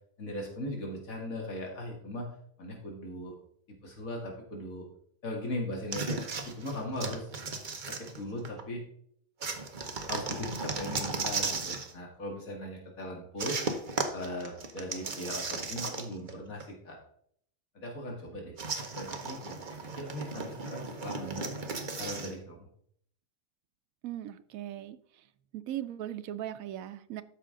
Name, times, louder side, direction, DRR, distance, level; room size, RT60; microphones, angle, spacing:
voice 1, 0.2-2.3 2.6-3.3 3.7-4.9 5.2-6.2 6.5-7.3 7.9-8.8 10.1-13.6 14.1-17.0 17.7-18.5 19.0-19.6 20.0-21.5 22.0-22.7, left 1 dB, 80° left, 0 dB, 2.3 m, -38 dB
sound 1, 5.9-8.6 9.4-11.9 13.4-16.3 16.6-16.7 18.6-22.3, right 4 dB, 40° right, 1.0 m, -36 dB
voice 2, 24.0-25.0 25.5-27.2, right 12 dB, 85° right, 12 dB, 1.0 m, -38 dB
12.5 x 5.1 x 3.7 m, 0.65 s
omnidirectional pair, 1.4 m